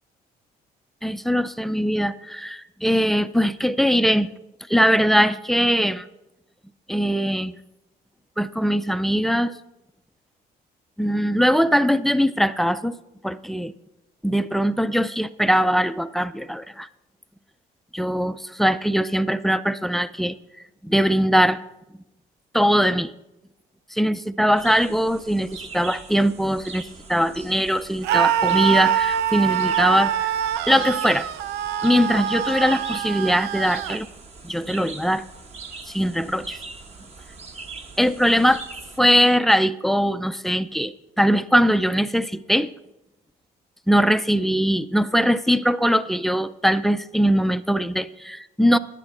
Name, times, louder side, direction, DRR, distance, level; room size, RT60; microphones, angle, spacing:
voice 1, 1.0-4.3 4.7-6.1 6.9-7.5 8.4-9.5 11.0-13.0 13.2-13.7 14.2-16.9 17.9-20.4 20.8-21.6 22.5-23.1 23.9-26.8 27.1-30.3 30.7-31.3 31.8-34.1 34.4-35.2 35.9-36.6 38.0-38.6 39.0-42.7 43.9-48.8, equal, ahead, 14 dB, 0.4 m, -21 dB
sound 1, 24.6-39.0, right 4 dB, 40° right, 1.1 m, -40 dB
Screaming, 28.0-34.0, right 10 dB, 85° right, 0.5 m, -24 dB
10.5 x 10.0 x 4.2 m, 0.92 s
cardioid pair, 110°, 17 cm